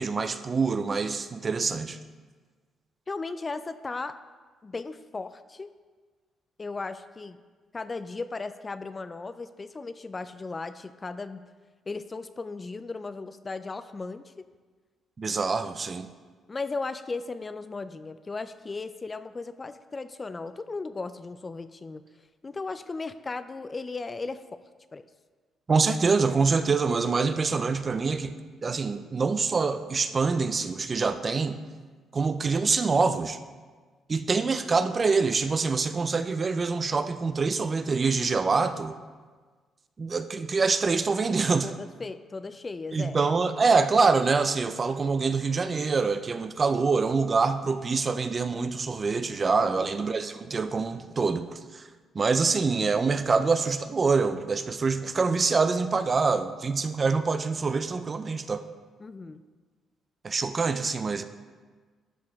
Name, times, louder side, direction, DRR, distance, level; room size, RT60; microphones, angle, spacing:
voice 1, 0.0-2.0 15.2-16.1 25.7-31.6 32.1-33.4 34.1-39.0 40.0-41.7 42.9-51.8 52.1-58.6 60.2-61.2, right 4 dB, 35° right, 11 dB, 0.4 m, -25 dB
voice 2, 3.1-4.2 4.6-5.7 6.6-7.4 7.7-11.4 11.9-14.3 16.5-22.0 22.4-24.6 24.9-25.1 41.6-43.2 49.6-49.9 59.0-59.4, left 3 dB, 30° left, 12 dB, 0.3 m, -36 dB
12.5 x 4.7 x 3.5 m, 1.4 s
cardioid pair, 90°, 0 cm